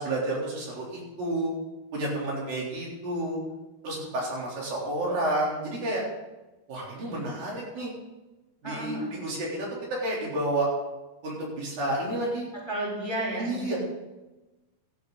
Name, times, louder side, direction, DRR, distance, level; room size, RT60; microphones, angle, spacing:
voice 1, 0.0-1.5 1.9-3.4 3.8-6.0 6.7-7.9 8.6-9.7 10.0-10.7 11.2-12.5 13.4-13.8, right 1 dB, 65° right, -4 dB, 5.2 m, -30 dB
voice 2, 8.6-9.1 12.7-13.8, right 1 dB, 10° left, -4 dB, 2.7 m, -32 dB
17.5 x 11.5 x 4.0 m, 1.1 s
omnidirectional pair, 4.3 m